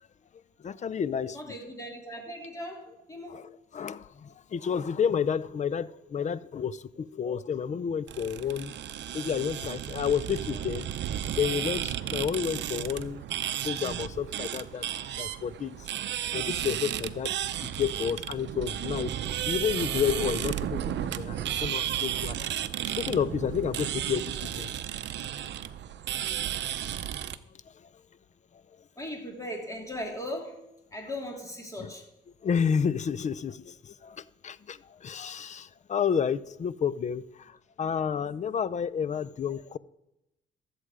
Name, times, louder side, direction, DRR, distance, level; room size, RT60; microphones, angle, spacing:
voice 1, 0.6-1.4 3.3-8.7 9.1-10.9 11.3-13.2 13.6-15.9 16.3-17.3 17.6-22.5 23.0-24.7 27.8-27.9 31.8-31.9 32.4-39.8, left 7 dB, 35° left, 0.5 m, -31 dB
voice 2, 1.3-3.4 29.0-30.6 30.9-32.0, left 1 dB, 15° left, 3.0 m, -38 dB
sound 1, 8.1-27.4, right 11 dB, 65° right, 0.6 m, -33 dB
13.5 x 7.9 x 4.9 m
cardioid pair, 90°, 20 cm